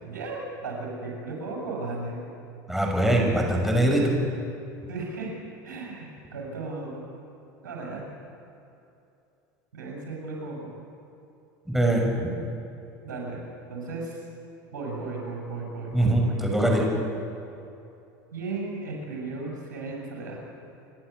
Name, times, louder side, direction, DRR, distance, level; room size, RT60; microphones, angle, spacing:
voice 1, 0.0-2.2 4.9-5.3 5.6-7.0 7.6-8.1 9.7-10.7 13.0-13.4 13.7-14.2 14.7-16.4 18.3-20.4, right 3 dB, 90° right, -1 dB, 6.6 m, -35 dB
voice 2, 2.7-4.1 11.7-12.3 15.9-16.9, right 1 dB, ahead, -1 dB, 6.2 m, -22 dB
28.0 x 11.5 x 9.2 m, 2.7 s
hypercardioid pair, 90°, 10 cm